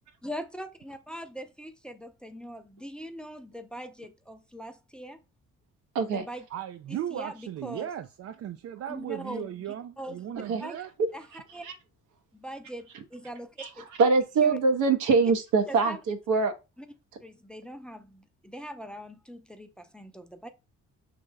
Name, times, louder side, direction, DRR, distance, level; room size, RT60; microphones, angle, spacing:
voice 1, 0.2-5.2 6.1-6.4 6.9-7.9 8.9-10.8 11.1-11.6 12.3-13.9 14.4-14.6 15.7-16.0 16.8-16.9 17.2-20.5, equal, 5° left, 0.6 m, -41 dB
voice 2, 5.9-6.3 10.5-10.6 11.0-11.1 11.6-11.7 13.6-13.7 14.0-16.5, right 4 dB, 90° right, 1.0 m, -23 dB
voice 3, 6.5-10.9, right 10 dB, 55° right, 0.4 m, -36 dB
6.2 x 3.3 x 2.3 m
cardioid pair, 90°, 30 cm